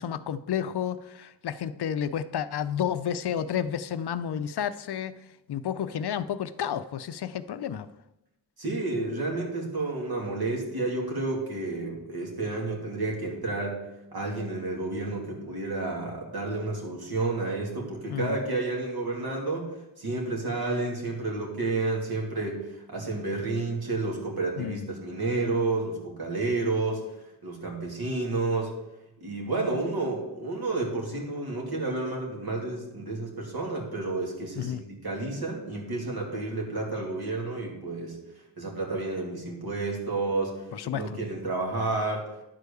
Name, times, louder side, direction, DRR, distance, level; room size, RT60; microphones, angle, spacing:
voice 1, 0.0-5.2 5.5-7.9 18.1-18.4 24.6-24.9 34.6-34.8 40.7-41.2, left 9 dB, 70° left, 13 dB, 0.6 m, -31 dB
voice 2, 8.6-13.8 14.1-27.0 27.4-28.7 29.2-38.2 38.6-42.3, right 3 dB, 60° right, -1 dB, 2.6 m, -30 dB
10.5 x 4.7 x 6.8 m, 0.91 s
wide cardioid pair, 80°, 41 cm